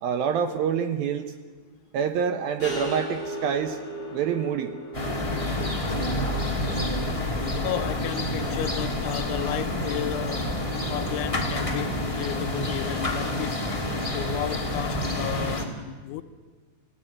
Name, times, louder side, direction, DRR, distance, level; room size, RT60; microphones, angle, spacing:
voice 1, 0.0-1.2 1.9-3.8 4.1-4.7, right 7 dB, 75° right, 2.2 m, -26 dB
sound 1, 2.6-8.4, right 1 dB, 30° left, 5.5 m, -38 dB
sound 2, 4.9-15.6, left 1 dB, 15° left, 1.1 m, -28 dB
voice 2, 7.6-10.5 10.9-13.7 14.1-16.2, left 12 dB, 80° left, 3.2 m, -33 dB
28.0 x 17.0 x 8.8 m
omnidirectional pair, 5.6 m